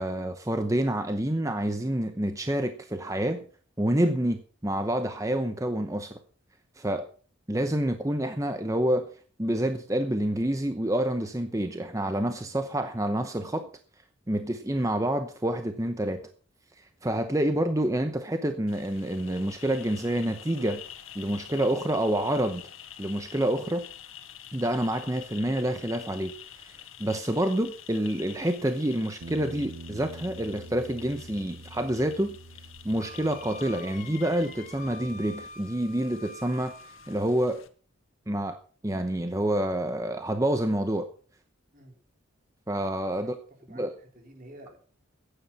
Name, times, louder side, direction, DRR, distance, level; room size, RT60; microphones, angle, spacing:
voice 1, 0.0-3.5 3.8-6.2 6.8-7.1 7.5-9.1 9.4-13.7 14.3-16.2 16.8-20.8 21.1-22.6 23.0-23.9 24.5-32.4 32.8-37.6 38.3-38.6 38.8-41.1 42.7-43.3 43.7-43.9, right 1 dB, 15° right, 8 dB, 0.8 m, -28 dB
sound 1, 18.7-37.7, left 9 dB, 90° left, 1.7 m, -48 dB
sound 2, 29.2-35.5, right 2 dB, 70° right, 0.8 m, -46 dB
Wind instrument woodwind instrument, 33.0-37.3, left 2 dB, 40° left, 2.0 m, -46 dB
voice 2, 43.1-44.8, right 1 dB, 45° right, 3 dB, 3.9 m, -50 dB
15.0 x 9.9 x 5.8 m, 0.42 s
head